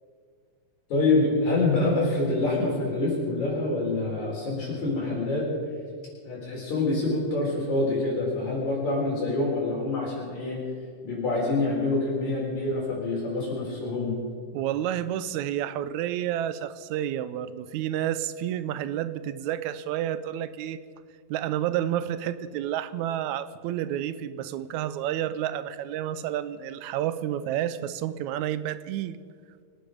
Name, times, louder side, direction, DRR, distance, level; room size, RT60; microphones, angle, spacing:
voice 1, 0.9-5.5 6.2-10.6 11.0-14.2, left 2 dB, 70° left, -5 dB, 5.3 m, -26 dB
voice 2, 14.5-20.8 21.3-29.2, right 11 dB, 80° right, 14 dB, 1.9 m, -30 dB
26.0 x 9.3 x 5.2 m, 2.1 s
omnidirectional pair, 3.4 m